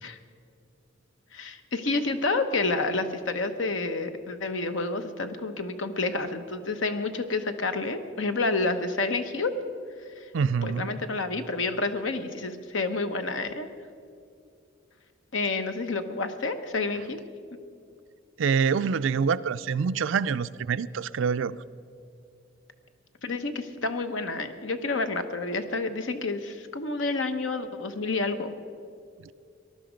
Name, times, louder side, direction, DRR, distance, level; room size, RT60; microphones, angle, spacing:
voice 1, 1.3-9.5 10.6-13.7 15.3-17.2 23.2-28.5, left 3 dB, 75° left, 8 dB, 1.0 m, -29 dB
voice 2, 10.3-10.9 18.4-21.6, right 6 dB, 75° right, 15 dB, 0.4 m, -26 dB
19.5 x 11.5 x 5.1 m, 2.4 s
head